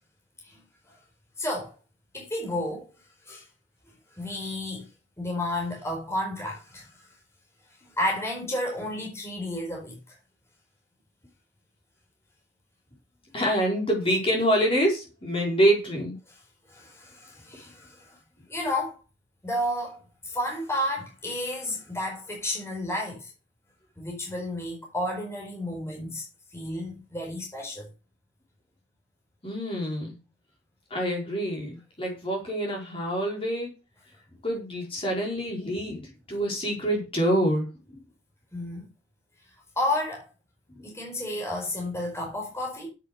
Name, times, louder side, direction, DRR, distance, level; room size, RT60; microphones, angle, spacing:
voice 1, 1.4-1.7 2.1-2.9 3.3-3.4 4.1-4.9 5.2-7.1 8.0-10.1 16.3-16.4 16.7-18.2 18.5-19.0 19.4-23.3 24.0-26.2 26.5-27.9 38.5-38.9 39.8-40.3 40.8-42.9, left 1 dB, 15° left, 4.5 m, -31 dB
voice 2, 13.3-16.1 29.4-30.2 30.9-33.7 34.4-37.7 40.8-40.9, equal, 30° left, 4.6 m, -26 dB
8.8 x 8.2 x 6.6 m
head